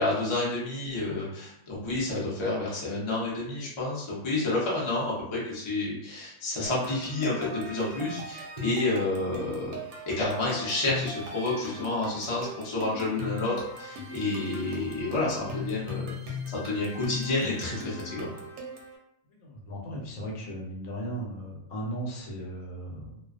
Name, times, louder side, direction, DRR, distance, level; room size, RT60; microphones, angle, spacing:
voice 1, 0.0-9.8 10.2-18.3, left 2 dB, 35° left, -5 dB, 0.5 m, -30 dB
sound 1, 6.7-19.0, left 1 dB, 85° right, 1.0 m, -39 dB
voice 2, 19.4-23.2, right 1 dB, 70° left, -2 dB, 1.0 m, -36 dB
2.4 x 2.2 x 2.4 m, 0.76 s
omnidirectional pair, 1.5 m